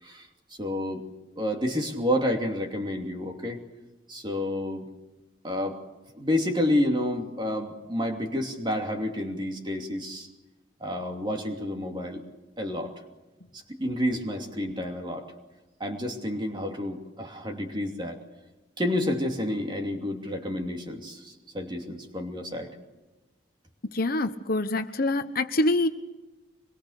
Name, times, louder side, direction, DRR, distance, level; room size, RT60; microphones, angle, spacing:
voice 1, 0.0-1.0 1.4-3.6 4.1-4.9 5.4-5.8 6.2-10.3 10.8-12.2 12.6-13.0 13.5-15.3 15.8-18.2 18.8-22.7, left 1 dB, 25° right, 3 dB, 2.8 m, -30 dB
voice 2, 23.9-25.9, left 2 dB, 50° left, 9 dB, 1.1 m, -25 dB
25.0 x 22.0 x 6.6 m, 1.1 s
head